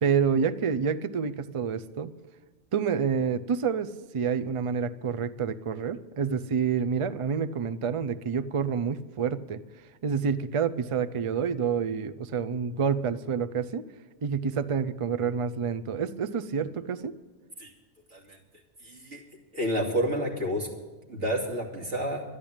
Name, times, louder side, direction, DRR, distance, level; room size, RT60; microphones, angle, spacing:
voice 1, 0.0-2.1 2.7-9.6 10.0-13.8 14.2-17.1, right 6 dB, 45° right, 12 dB, 0.4 m, -28 dB
voice 2, 18.8-19.2 19.5-20.7 21.1-22.2, equal, 75° right, -1 dB, 2.9 m, -29 dB
12.0 x 11.0 x 8.7 m, 1.3 s
omnidirectional pair, 1.2 m